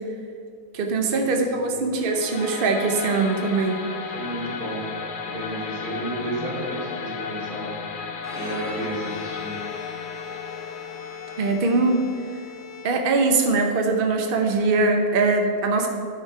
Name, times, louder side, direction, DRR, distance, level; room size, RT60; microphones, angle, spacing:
voice 1, 0.7-3.8 11.4-12.0 12.8-15.9, right 3 dB, 45° right, 3 dB, 0.8 m, -22 dB
sound 1, 2.0-13.0, left 5 dB, 50° left, 0.7 m, -35 dB
voice 2, 4.1-4.8 5.2-7.7 8.3-9.6, right 1 dB, 75° right, -5 dB, 3.0 m, -32 dB
Bowed string instrument, 8.1-13.4, left 6 dB, ahead, 1.8 m, -39 dB
10.5 x 5.0 x 4.7 m, 2.4 s
omnidirectional pair, 1.6 m